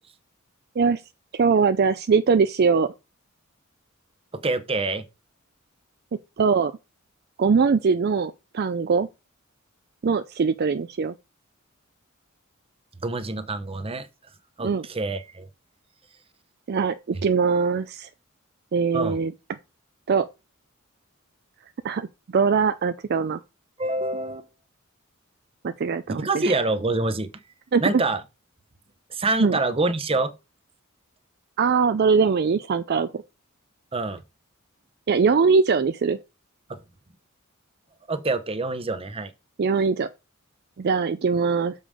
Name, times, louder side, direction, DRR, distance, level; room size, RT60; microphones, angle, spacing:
voice 1, 1.3-2.9 6.4-6.7 7.4-9.1 10.0-11.1 14.6-14.9 16.7-18.1 18.7-19.3 20.1-20.3 21.8-22.1 22.3-23.4 25.6-26.6 27.7-28.0 29.4-29.6 31.6-33.2 35.1-36.2 39.6-40.1 40.8-41.7, right 5 dB, 50° right, 0.4 m, -21 dB
voice 2, 4.3-5.0 13.0-14.1 14.6-15.5 18.9-19.2 23.8-24.5 26.1-27.3 27.8-28.2 29.1-30.3 33.9-34.2 36.7-36.8 38.1-39.3, right 2 dB, 25° right, 0.8 m, -26 dB
6.9 x 5.4 x 4.9 m
head